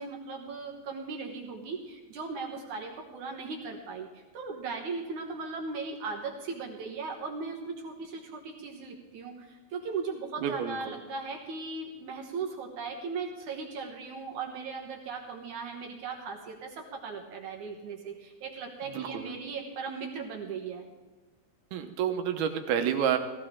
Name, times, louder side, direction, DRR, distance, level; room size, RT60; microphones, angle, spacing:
voice 1, 0.0-20.9, right 4 dB, 60° right, 1 dB, 2.3 m, -38 dB
voice 2, 10.4-10.9 18.8-19.3 21.7-23.2, right 9 dB, 80° right, 6 dB, 2.9 m, -29 dB
16.5 x 15.0 x 3.7 m, 1.2 s
omnidirectional pair, 4.5 m